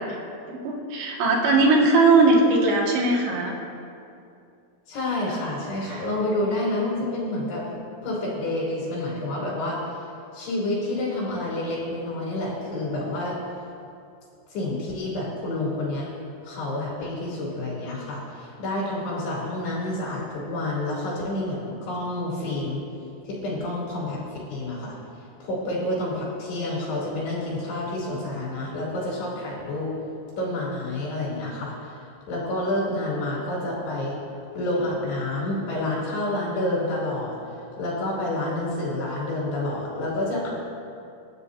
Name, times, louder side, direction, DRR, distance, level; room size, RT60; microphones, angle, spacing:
voice 1, 0.5-3.6 5.9-6.0, right 3 dB, 75° right, -2 dB, 4.0 m, -19 dB
voice 2, 4.9-7.7 8.0-10.1 10.3-13.4 14.5-16.1 16.4-22.8 23.2-25.0 25.4-29.9 30.4-34.2 34.5-37.4 37.8-40.5, left 1 dB, 70° left, -6 dB, 5.6 m, -29 dB
29.5 x 13.0 x 2.8 m, 2.5 s
omnidirectional pair, 5.0 m